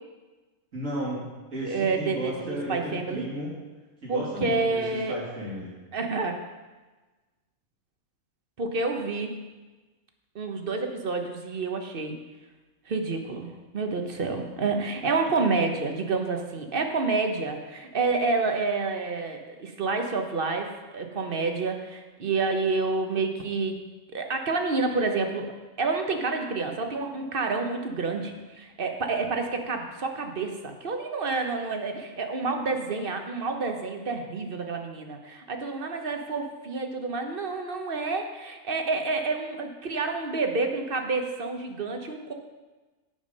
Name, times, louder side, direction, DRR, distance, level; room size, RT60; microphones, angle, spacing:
voice 1, 0.7-3.5 4.0-4.8 5.1-5.7, equal, 75° right, -5 dB, 3.2 m, -34 dB
voice 2, 1.6-3.2 4.1-5.2 5.9-6.5 8.6-9.4 10.3-12.2 12.9-23.8 24.1-25.5 25.8-42.3, right 3 dB, 45° right, 4 dB, 1.2 m, -29 dB
9.7 x 7.2 x 5.4 m, 1.2 s
omnidirectional pair, 1.3 m